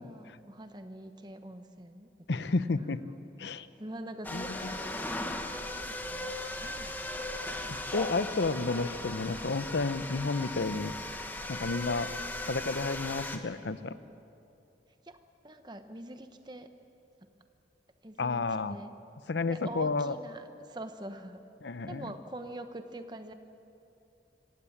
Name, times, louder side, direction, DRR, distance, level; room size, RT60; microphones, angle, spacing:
voice 1, 0.0-2.1 2.7-3.2 3.8-7.3 15.0-15.2 15.4-16.7 18.0-18.4 18.7-18.9 19.4-21.4 21.8-23.3, right 1 dB, 25° right, 8 dB, 1.0 m, -45 dB
voice 2, 2.3-3.0 3.4-3.7 4.3-4.5 7.7-10.9 11.5-12.1 12.5-14.0 18.2-18.8 19.3-20.1 21.6-22.1, left 3 dB, 85° left, 13 dB, 0.7 m, -31 dB
sound 1, 4.2-13.4, left 1 dB, 10° left, 1.1 m, -38 dB
25.5 x 17.0 x 7.3 m, 2.7 s
head